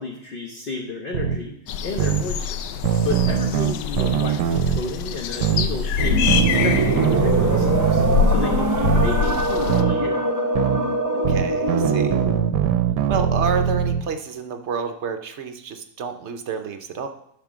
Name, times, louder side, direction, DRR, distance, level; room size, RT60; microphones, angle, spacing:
voice 1, 0.0-1.6 1.8-2.6 3.0-6.2 6.6-8.0 8.3-10.2, left 3 dB, 45° left, 2 dB, 0.7 m, -31 dB
sound 1, 1.1-1.4 2.0-2.2 2.8-4.8 5.4-5.7 6.3-8.2 8.8-9.1 9.7-10.0 10.5-10.8 11.2-14.0, right 10 dB, 85° right, 1.2 m, -22 dB
sound 2, 1.7-9.8, left 6 dB, 85° left, 1.2 m, -25 dB
sound 3, 6.0-12.5, right 1 dB, 20° right, 0.5 m, -23 dB
voice 2, 11.3-12.2 13.1-17.1, right 6 dB, 60° right, 7 dB, 0.8 m, -29 dB
11.5 x 4.4 x 6.1 m, 0.75 s
omnidirectional pair, 1.8 m